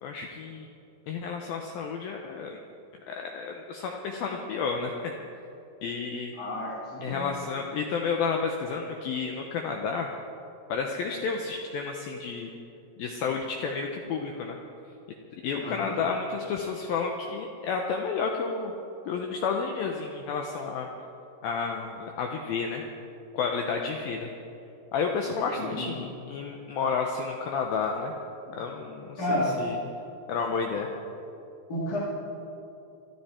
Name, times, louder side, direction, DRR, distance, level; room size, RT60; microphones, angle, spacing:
voice 1, 0.0-0.7 1.1-2.6 3.1-5.1 5.8-6.3 7.0-10.1 10.7-12.5 13.0-14.6 15.4-18.7 19.1-20.9 21.4-22.8 23.3-24.3 24.9-28.1 28.5-29.8 30.3-30.9, left 5 dB, 80° left, 2 dB, 2.1 m, -31 dB
voice 2, 6.4-7.3 15.6-16.0 25.6-25.9 28.5-28.6 29.2-29.6 31.7-32.0, left 1 dB, 40° left, -5 dB, 1.3 m, -31 dB
23.5 x 12.5 x 4.4 m, 2.8 s
omnidirectional pair, 5.3 m